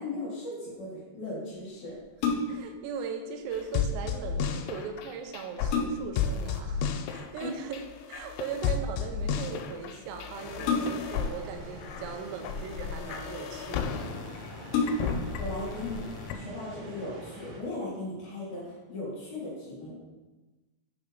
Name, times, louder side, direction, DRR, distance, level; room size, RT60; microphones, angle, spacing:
voice 1, 0.0-1.9 7.4-7.5 15.0-15.1 15.4-20.0, left 2 dB, 55° left, -9 dB, 3.3 m, -37 dB
sound 1, 2.0-2.8 4.8-4.9 5.3-6.3 7.8-8.2 10.6-11.3 12.2-12.9 13.7-13.8 14.1-14.2 14.7-15.3 15.8-15.9, left 4 dB, 75° left, 2.8 m, -30 dB
voice 2, 2.5-7.8 8.1-14.2, right 6 dB, 85° right, 5 dB, 3.4 m, -39 dB
sound 2, 3.5-16.4, left 6 dB, 90° left, 3.3 m, -33 dB
sound 3, 10.3-17.6, right 2 dB, 60° right, 2.9 m, -46 dB
8.9 x 3.5 x 5.2 m, 1.1 s
omnidirectional pair, 5.8 m